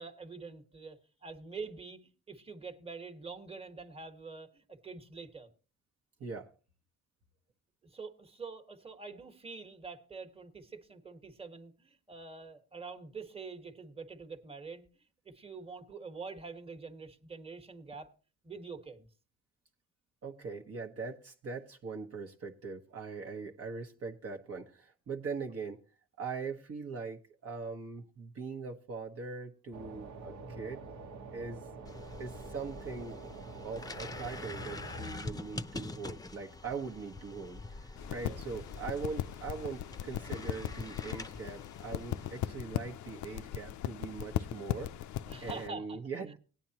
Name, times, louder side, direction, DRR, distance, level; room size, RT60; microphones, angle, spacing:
voice 1, 0.0-5.5 7.9-14.8 15.2-18.1 18.4-19.1 38.1-38.4 45.3-46.0, right 4 dB, 20° right, 1.4 m, -46 dB
voice 2, 6.2-6.5 20.2-25.8 26.2-30.8 31.3-31.6 32.2-33.2 33.6-37.8 38.1-44.9 45.4-46.4, right 4 dB, 50° right, 1.1 m, -41 dB
sound 1, 29.7-35.1, right 3 dB, 70° right, 1.3 m, -46 dB
sound 2, 31.8-42.4, left 3 dB, 10° left, 0.6 m, -45 dB
sound 3, 38.0-45.7, left 12 dB, 75° left, 0.5 m, -38 dB
18.0 x 9.2 x 2.9 m
cardioid pair, 90°, 30 cm